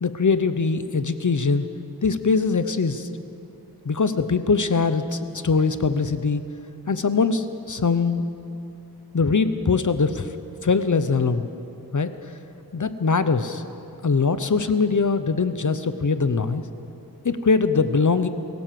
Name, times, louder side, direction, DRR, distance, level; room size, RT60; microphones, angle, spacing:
voice 1, 0.0-1.7 2.0-3.1 3.8-6.4 6.9-8.3 9.1-10.3 10.6-11.5 11.9-12.1 12.7-13.6 14.0-16.6 17.2-18.3, left 4 dB, 50° left, 11 dB, 0.9 m, -22 dB
23.0 x 16.5 x 7.7 m, 2.7 s
wide cardioid pair, 85°, 39 cm